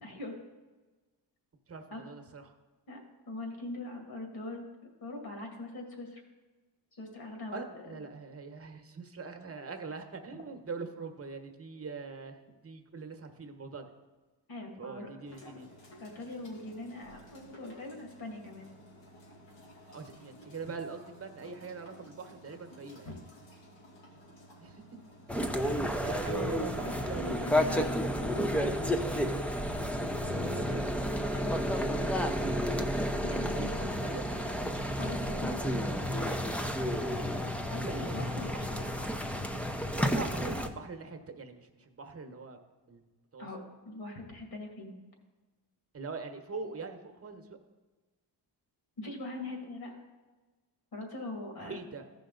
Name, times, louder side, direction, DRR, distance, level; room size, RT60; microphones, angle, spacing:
voice 1, 0.0-0.4 1.9-2.0 2.9-3.0 3.3-4.6 5.0-6.2 6.9-7.6 14.5-15.1 16.0-18.7 23.1-23.2 26.8-28.8 31.3-32.1 33.1-34.2 35.0-35.8 37.7-39.0 43.4-43.6 43.8-44.9 49.0-50.0 50.9-51.8, left 2 dB, 55° left, 2 dB, 2.4 m, -42 dB
voice 2, 1.7-2.5 7.5-13.9 14.8-15.7 19.9-23.1 24.6-24.8 25.4-27.9 30.4-30.9 33.4-34.2 37.8-38.7 40.0-42.6 42.9-43.0 43.3-43.5 45.9-47.6 51.6-52.1, right 4 dB, 30° right, 6 dB, 1.2 m, -42 dB
sound 1, 15.2-30.1, equal, 85° left, 2.3 m, -55 dB
sound 2, 25.3-40.7, equal, 5° left, 0.7 m, -31 dB
14.0 x 5.4 x 3.9 m, 1.2 s
cardioid pair, 80°, 43 cm